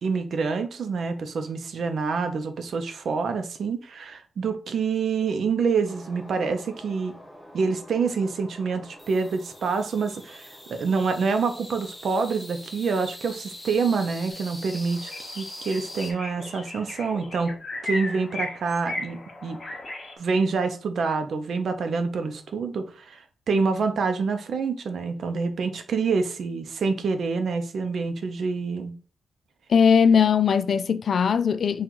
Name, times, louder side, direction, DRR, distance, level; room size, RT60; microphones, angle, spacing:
voice 1, 0.0-7.1 7.5-17.5 17.8-19.6 20.2-28.9, right 4 dB, 65° right, 0.6 m, -27 dB
sound 1, 5.8-16.1, left 1 dB, 5° left, 0.8 m, -43 dB
sound 2, 14.3-14.4 14.7-20.1, left 2 dB, 30° left, 1.0 m, -36 dB
voice 2, 29.7-31.8, left 6 dB, 60° left, 0.3 m, -19 dB
3.9 x 2.4 x 4.5 m
wide cardioid pair, 135°, 0 cm